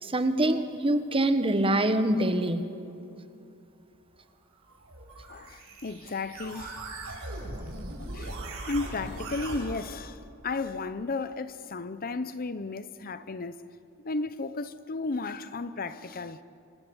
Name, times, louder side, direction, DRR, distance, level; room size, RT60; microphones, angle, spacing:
voice 1, 0.0-2.6, right 1 dB, 25° right, 1.3 m, -25 dB
sound 1, 4.7-9.6, right 2 dB, 70° right, 6.7 m, -39 dB
voice 2, 5.3-6.8 7.1-7.2 8.1-8.4 8.6-13.6 14.0-16.4, left 3 dB, 45° left, 0.8 m, -34 dB
27.0 x 25.5 x 7.2 m
head